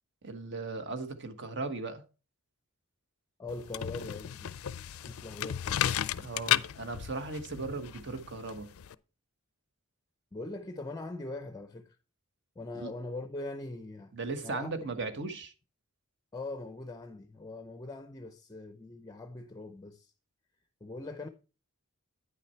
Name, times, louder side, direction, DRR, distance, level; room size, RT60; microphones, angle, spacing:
voice 1, 0.2-2.0 6.2-8.7 12.7-12.9 14.1-15.5, right 3 dB, 55° right, 1.2 m, -37 dB
voice 2, 3.4-4.5 4.9-6.1 10.3-12.0 12.6-14.1 14.4-14.7 16.3-20.1 20.8-21.3, left 2 dB, 15° left, 0.5 m, -42 dB
sound 1, 3.5-8.9, left 11 dB, 70° left, 0.4 m, -34 dB
9.5 x 5.8 x 4.4 m
head